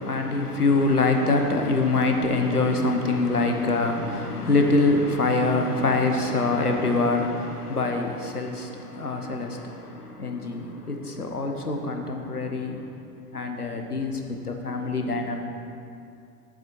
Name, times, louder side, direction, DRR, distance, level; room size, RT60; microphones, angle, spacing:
voice 1, 0.0-12.9 13.3-15.4, left 3 dB, 90° left, 0.9 m, -24 dB
10.5 x 7.4 x 3.0 m
figure-of-eight pair, 90°, 44 cm